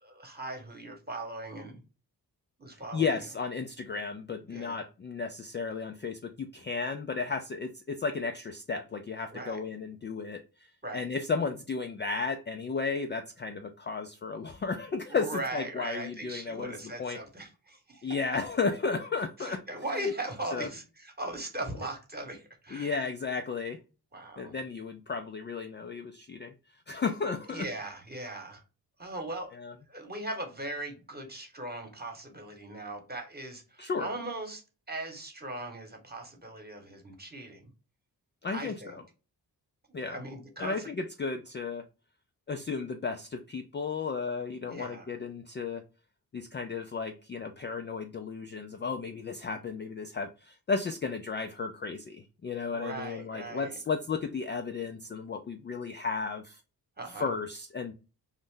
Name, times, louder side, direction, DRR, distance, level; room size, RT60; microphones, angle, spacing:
voice 1, 0.0-1.8 2.6-3.2 4.5-4.8 9.3-9.6 10.8-11.1 15.1-18.1 19.4-22.9 24.1-24.5 27.5-28.6 29.0-29.5 29.9-34.6 34.9-37.7 38.5-39.0 40.1-40.9 44.6-45.1 52.7-53.8 57.0-57.3, right 1 dB, 20° right, 4 dB, 1.1 m, -39 dB
voice 2, 2.9-17.2 18.0-19.6 20.5-20.7 22.7-23.8 24.4-27.7 29.5-29.7 33.8-34.1 38.4-39.0 39.9-40.2 40.6-41.8 42.5-45.8 46.3-56.6 57.2-57.9, left 4 dB, 25° left, 6 dB, 0.3 m, -34 dB
2.5 x 2.1 x 3.7 m, 0.32 s
supercardioid pair, 40°, 44 cm